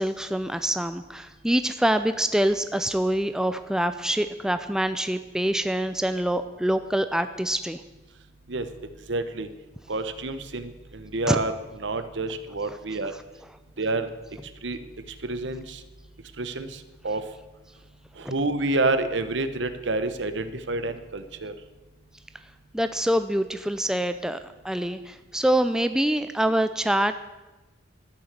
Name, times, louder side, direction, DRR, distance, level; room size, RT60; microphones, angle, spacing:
voice 1, 0.0-7.8 11.3-11.4 18.2-18.3 22.7-24.4 24.6-27.1, right 1 dB, 5° right, 10 dB, 0.4 m, -25 dB
voice 2, 9.1-9.5 9.9-11.6 11.8-13.1 13.8-14.1 14.6-14.8 15.2-15.8 16.4-17.2 18.2-21.5, right 2 dB, 65° right, 10 dB, 1.0 m, -28 dB
13.0 x 9.8 x 6.6 m, 1.1 s
head